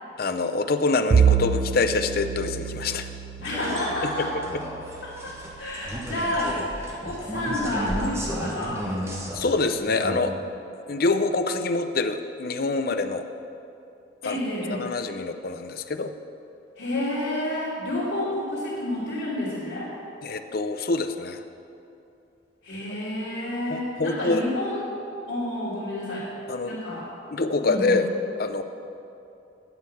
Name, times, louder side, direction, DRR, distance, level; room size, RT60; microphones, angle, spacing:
voice 1, 0.2-3.1 4.0-4.3 9.3-10.3 10.9-13.3 14.2-14.4 14.7-16.1 20.2-21.4 23.7-24.4 26.5-26.8 27.3-28.1 28.4-28.6, left 3 dB, 50° left, 8 dB, 0.6 m, -25 dB
Bowed string instrument, 1.1-5.7, right 6 dB, 50° right, 0.4 m, -26 dB
voice 2, 3.4-4.3 5.0-8.8 14.2-14.8 16.8-19.9 22.6-24.8 25.3-26.3 26.6-27.1 27.6-28.0, left 1 dB, 80° left, -13 dB, 3.0 m, -29 dB
sound 1, 3.4-10.2, right 1 dB, 15° right, 1.3 m, -34 dB
9.9 x 6.5 x 8.4 m, 2.7 s
head